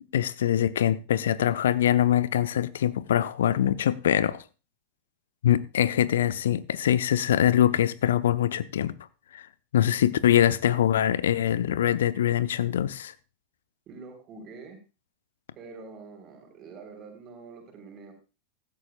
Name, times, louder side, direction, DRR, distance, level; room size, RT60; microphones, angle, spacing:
voice 1, 0.1-4.4 5.4-9.0 9.3-9.4 9.7-13.1, left 11 dB, 60° left, 0.6 m, -23 dB
voice 2, 13.9-14.8 15.6-18.1, right 4 dB, 30° right, 3.7 m, -45 dB
15.5 x 13.0 x 2.4 m
figure-of-eight pair, 90°, 0 cm